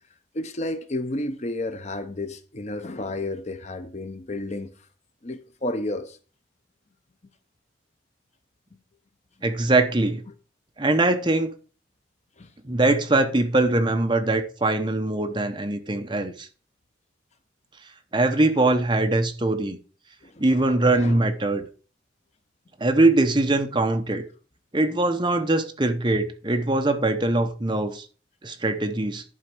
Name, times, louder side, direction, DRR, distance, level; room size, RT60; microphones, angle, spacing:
voice 1, 0.3-4.7 5.2-6.2 12.4-12.5 20.2-21.3, left 1 dB, 35° left, 0.7 m, -32 dB
voice 2, 9.4-10.2 10.8-11.5 12.6-16.5 18.1-19.8 20.4-21.7 22.8-24.2 24.7-28.1 28.4-29.2, right 2 dB, 25° right, 0.9 m, -22 dB
11.0 x 4.1 x 6.1 m
head